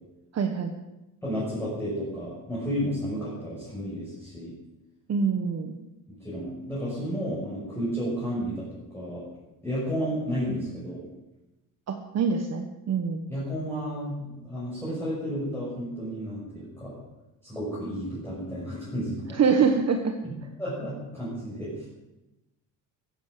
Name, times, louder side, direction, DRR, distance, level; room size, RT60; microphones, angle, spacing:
voice 1, 0.3-0.7 5.1-5.8 11.9-13.2 19.3-20.1, right 5 dB, 40° right, 5 dB, 1.3 m, -25 dB
voice 2, 1.2-4.5 6.1-8.7 8.9-9.3 9.6-11.0 13.3-17.0 17.4-19.4 20.2-20.3 20.6-21.9, equal, 5° left, -8 dB, 6.1 m, -32 dB
15.5 x 10.5 x 6.7 m, 0.98 s
cardioid pair, 130°, 39 cm